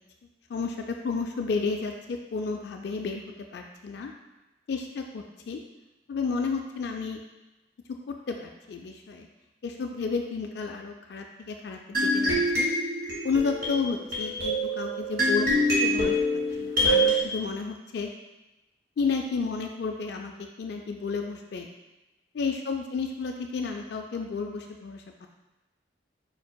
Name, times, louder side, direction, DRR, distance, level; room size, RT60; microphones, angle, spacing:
voice 1, 0.5-4.1 4.7-5.6 6.1-7.2 7.9-9.3 9.6-12.7 13.2-16.2 16.6-18.1 19.0-21.7 22.3-25.3, left 4 dB, 60° left, 3 dB, 0.3 m, -32 dB
sound 1, 11.9-17.2, equal, 55° right, 1.5 m, -25 dB
5.2 x 4.5 x 2.2 m, 1.0 s
head